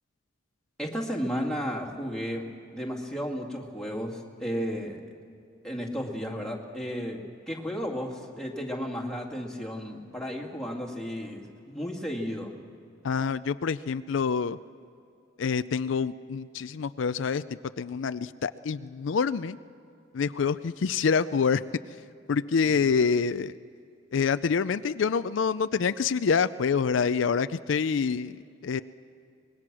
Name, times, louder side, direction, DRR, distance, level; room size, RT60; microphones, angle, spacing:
voice 1, 0.8-2.4 2.7-5.0 5.6-7.2 7.5-12.5, equal, 5° left, -1 dB, 2.3 m, -33 dB
voice 2, 13.0-14.6 15.4-17.4 17.8-19.6 20.1-21.6 22.3-23.5 24.1-28.3 28.6-28.8, left 5 dB, 75° left, 13 dB, 0.4 m, -26 dB
25.0 x 20.5 x 6.1 m, 2.6 s
head